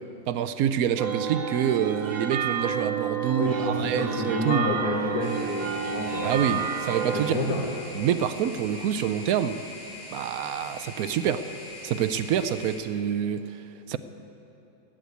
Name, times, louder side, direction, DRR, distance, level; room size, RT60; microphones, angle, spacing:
voice 1, 0.3-4.6 6.2-7.4 7.9-9.6 10.1-11.4 11.8-14.0, right 9 dB, 80° right, 11 dB, 1.0 m, -27 dB
sound 1, 1.0-7.3, right 7 dB, 55° right, 0.4 m, -30 dB
voice 2, 3.4-6.6 7.1-7.7, left 1 dB, 90° left, -2 dB, 2.0 m, -29 dB
sound 2, 5.2-12.8, left 2 dB, 20° left, 3.7 m, -42 dB
16.0 x 8.7 x 8.3 m, 2.9 s
omnidirectional pair, 1.5 m